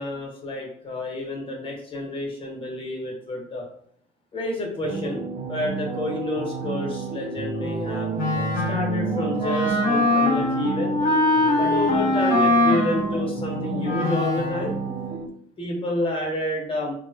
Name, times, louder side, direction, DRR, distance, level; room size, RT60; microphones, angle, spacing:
voice 1, 0.0-3.6 4.3-8.1 8.7-10.9 11.5-14.8 15.6-16.9, left 1 dB, 30° left, 0 dB, 1.1 m, -29 dB
sound 1, 4.8-15.3, right 5 dB, 40° right, 0.4 m, -31 dB
Wind instrument woodwind instrument, 8.2-14.7, left 2 dB, 55° left, 1.1 m, -23 dB
3.1 x 2.2 x 2.7 m, 0.64 s
cardioid pair, 110°, 17 cm